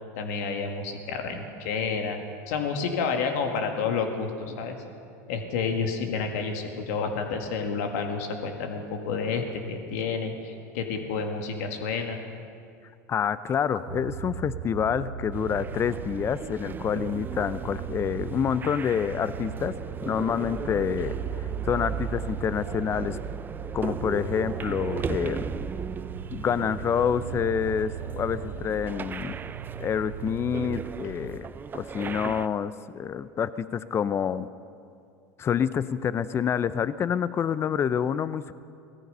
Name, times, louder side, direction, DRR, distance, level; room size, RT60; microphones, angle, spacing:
voice 1, 0.2-2.2 2.5-4.8 5.3-12.2, left 5 dB, 75° left, 4 dB, 2.0 m, -30 dB
voice 2, 13.1-19.7 20.0-21.2 21.7-23.2 23.7-25.5 26.3-29.4 29.8-31.5 31.7-34.5 35.4-38.5, left 8 dB, 30° left, 15 dB, 0.6 m, -27 dB
sound 1, 13.9-31.4, right 10 dB, 85° right, 0.6 m, -38 dB
sound 2, 15.3-32.5, right 6 dB, 25° right, 0.5 m, -37 dB
18.0 x 14.0 x 5.5 m, 2.3 s
hypercardioid pair, 100°, 8 cm